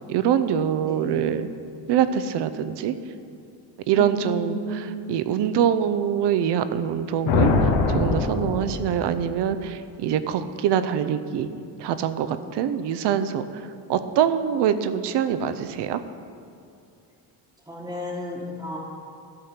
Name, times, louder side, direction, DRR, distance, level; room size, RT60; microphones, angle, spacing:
voice 1, 0.1-1.5 1.9-2.9 3.9-7.5 7.9-11.5 11.8-13.5 13.9-16.0, right 9 dB, 65° right, 11 dB, 0.6 m, -24 dB
voice 2, 0.8-1.3 4.0-4.9 17.7-18.8, left 1 dB, 10° right, -7 dB, 1.2 m, -33 dB
sound 1, 7.3-9.2, left 4 dB, 80° left, 1.1 m, -22 dB
12.5 x 4.4 x 6.6 m, 2.6 s
cardioid pair, 120°, 45 cm